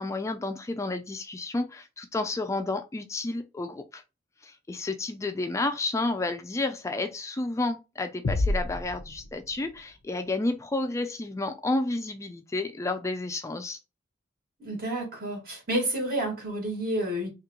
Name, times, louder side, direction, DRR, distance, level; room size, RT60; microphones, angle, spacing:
voice 1, 0.0-4.0 4.4-13.8, left 2 dB, 15° left, 0.3 m, -31 dB
sound 1, 8.2-10.0, left 2 dB, 80° left, 0.5 m, -30 dB
voice 2, 14.6-17.3, right 1 dB, 50° right, 2.2 m, -30 dB
3.7 x 2.9 x 2.8 m
head